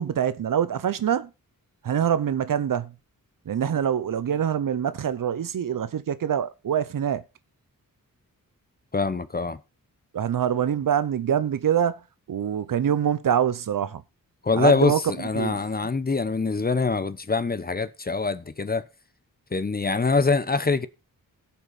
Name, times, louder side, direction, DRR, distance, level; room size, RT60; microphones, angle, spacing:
voice 1, 0.0-1.3 1.8-2.9 3.4-7.2 10.1-14.0 14.5-15.6, right 9 dB, 65° right, 0.8 m, -25 dB
voice 2, 8.9-9.6 14.4-18.9 19.5-20.9, left 4 dB, 25° left, 0.9 m, -24 dB
17.0 x 5.6 x 4.1 m
cardioid pair, 85°, 35 cm